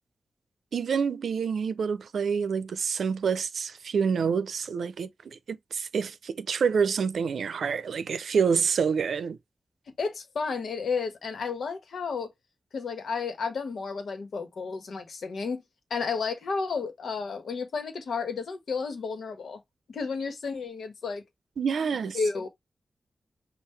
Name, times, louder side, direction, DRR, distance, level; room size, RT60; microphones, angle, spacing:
voice 1, 0.7-9.4 21.6-22.2, right 6 dB, 80° right, 0.5 m, -27 dB
voice 2, 10.0-12.3 12.7-15.6 15.9-19.6 19.9-21.2 22.1-22.5, left 5 dB, 80° left, 1.3 m, -32 dB
5.6 x 2.5 x 3.2 m
wide cardioid pair, 160°, 0 cm